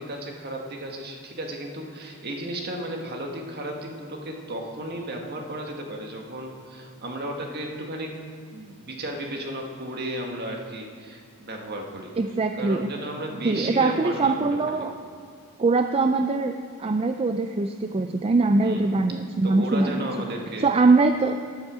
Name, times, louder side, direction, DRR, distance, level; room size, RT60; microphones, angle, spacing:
voice 1, 0.0-8.2 8.5-12.2 12.6-14.9 18.6-19.0 19.4-20.7, right 1 dB, 45° right, 1 dB, 1.5 m, -34 dB
voice 2, 12.2-12.9 13.4-14.9 15.6-16.5 16.8-20.1 20.6-21.4, right 3 dB, 25° right, 7 dB, 0.4 m, -22 dB
13.5 x 10.5 x 5.0 m, 2.2 s
head